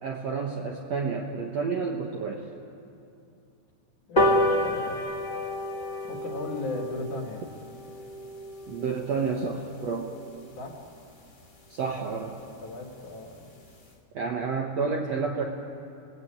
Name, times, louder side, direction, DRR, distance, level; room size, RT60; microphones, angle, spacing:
voice 1, 0.0-2.5 8.7-10.1 11.7-12.3 14.1-15.4, right 5 dB, 60° right, 0 dB, 1.8 m, -30 dB
voice 2, 4.1-5.1 6.0-7.4 10.6-10.8 11.8-13.5, left 2 dB, 55° left, 2 dB, 3.3 m, -36 dB
sound 1, 4.2-10.9 11.3-11.4 11.7-11.9 12.1-12.2 12.5-12.6 12.9-13.2 13.6-13.7, left 1 dB, 35° left, 0.7 m, -30 dB
28.5 x 18.0 x 8.9 m, 2.6 s
omnidirectional pair, 4.7 m